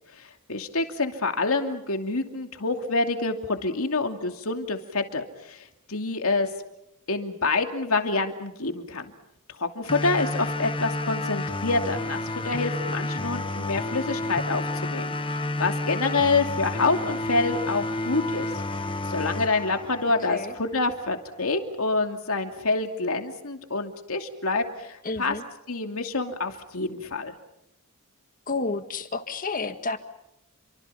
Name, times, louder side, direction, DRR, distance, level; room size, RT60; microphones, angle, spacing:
voice 1, 0.1-6.5 7.1-9.1 9.6-18.5 19.1-25.3 25.7-27.3, left 3 dB, 75° left, 5 dB, 2.7 m, -27 dB
sound 1, 9.9-20.9, left 2 dB, 25° left, 1.4 m, -30 dB
voice 2, 25.0-25.4 28.5-30.0, left 3 dB, 40° left, 9 dB, 1.8 m, -30 dB
29.0 x 25.0 x 5.8 m, 0.84 s
head